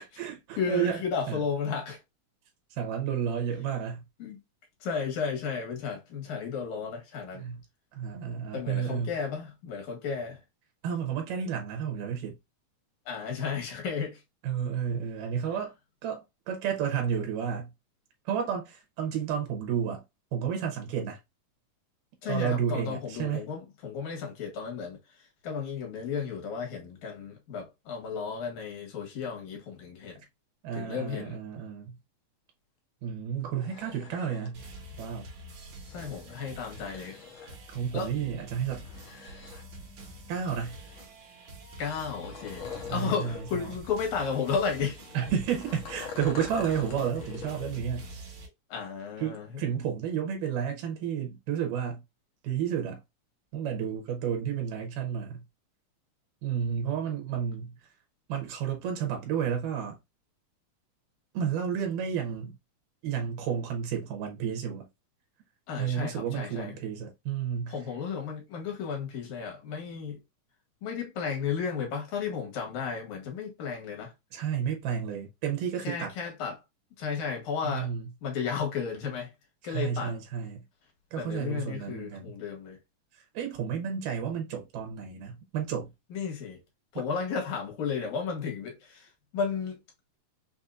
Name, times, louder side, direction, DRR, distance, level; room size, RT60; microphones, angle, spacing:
voice 1, 0.0-1.0 1.3-1.4 2.7-4.0 7.3-7.6 7.9-9.1 10.8-12.4 14.4-15.7 16.0-17.7 18.3-20.0 20.3-21.2 22.3-23.4 30.6-32.0 33.0-34.6 35.0-35.3 37.7-38.8 40.3-40.8 42.9-43.7 45.1-48.1 49.2-52.0 52.4-53.0 53.5-55.4 56.4-57.8 58.3-60.0 61.3-62.5 63.0-64.9 65.8-67.7 74.3-76.1 77.6-78.1 79.6-80.6 81.1-82.4 83.1-85.9, right 8 dB, 80° right, 2.5 m, -31 dB
voice 2, 0.6-2.0 4.2-4.4 4.8-7.5 8.5-10.4 13.1-14.2 22.2-25.0 25.4-30.2 30.7-31.4 35.9-37.1 37.9-38.1 41.8-42.7 42.9-45.0 48.7-49.6 65.7-66.8 67.7-70.2 70.8-74.1 75.8-76.6 77.0-77.9 78.2-79.3 79.6-80.1 81.2-82.8 86.1-86.6 86.9-89.8, left 6 dB, 70° left, 2.8 m, -33 dB
sound 1, 33.4-34.5 35.7-37.6 38.7-39.9 40.3-41.2 42.0-43.5 43.8-43.9 44.7-47.8 48.1-48.2, left 6 dB, 85° left, 1.1 m, -44 dB
sound 2, 34.5-48.5, right 1 dB, 60° right, 2.3 m, -46 dB
5.7 x 2.7 x 2.4 m
omnidirectional pair, 3.7 m